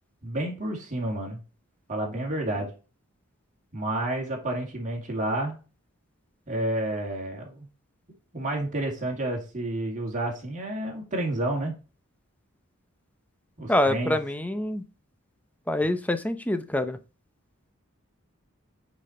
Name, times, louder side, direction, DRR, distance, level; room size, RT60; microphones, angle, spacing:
voice 1, 0.2-1.4 1.9-2.7 3.7-5.6 6.5-7.7 8.3-11.7 13.6-14.2, right 1 dB, 35° right, 0 dB, 2.1 m, -30 dB
voice 2, 13.7-14.8 15.7-17.0, left 1 dB, 5° left, 10 dB, 0.7 m, -26 dB
8.7 x 4.2 x 4.3 m, 0.33 s
head